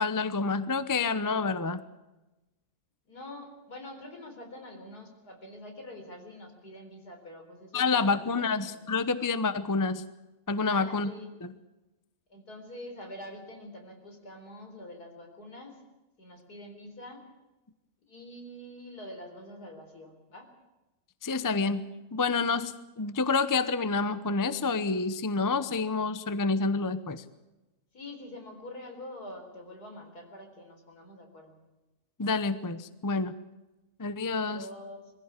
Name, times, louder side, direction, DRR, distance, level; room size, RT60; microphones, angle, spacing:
voice 1, 0.0-1.8 7.7-10.0 10.5-11.1 11.4-11.5 21.2-21.8 22.1-27.2 32.2-33.3 34.0-34.6, left 4 dB, 20° left, 13 dB, 0.6 m, -28 dB
voice 2, 3.1-9.0 10.6-11.3 12.3-15.8 16.2-17.2 18.0-20.5 27.9-31.6 34.4-35.1, left 1 dB, 70° left, 4 dB, 4.7 m, -45 dB
22.5 x 15.5 x 8.3 m, 1.0 s
omnidirectional pair, 1.7 m